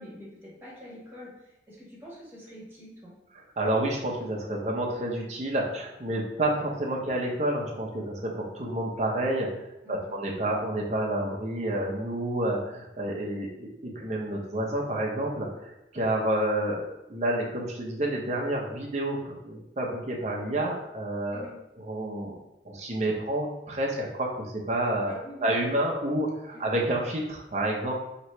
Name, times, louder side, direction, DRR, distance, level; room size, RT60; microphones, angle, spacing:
voice 1, 0.0-3.2 9.8-10.2 21.3-21.6 25.1-25.5 26.5-26.6, equal, 10° right, -7 dB, 1.5 m, -46 dB
voice 2, 3.6-13.7 13.9-21.5 21.8-22.4 22.6-24.3 24.7-25.1 25.4-27.9, right 1 dB, 40° right, -2 dB, 0.7 m, -29 dB
3.1 x 3.0 x 4.4 m, 0.90 s
head